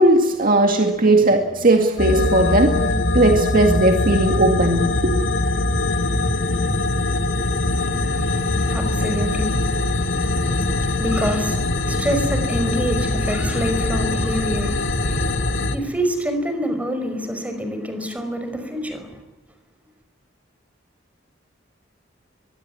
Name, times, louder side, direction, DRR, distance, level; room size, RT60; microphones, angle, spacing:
voice 1, 0.0-2.8 3.1-5.1, right 2 dB, 50° right, 3 dB, 2.1 m, -17 dB
sound 1, 2.0-15.8, left 2 dB, 75° left, 2.2 m, -22 dB
voice 2, 7.8-19.2, equal, 10° right, 7 dB, 5.4 m, -27 dB
23.0 x 21.5 x 9.8 m, 1.1 s
head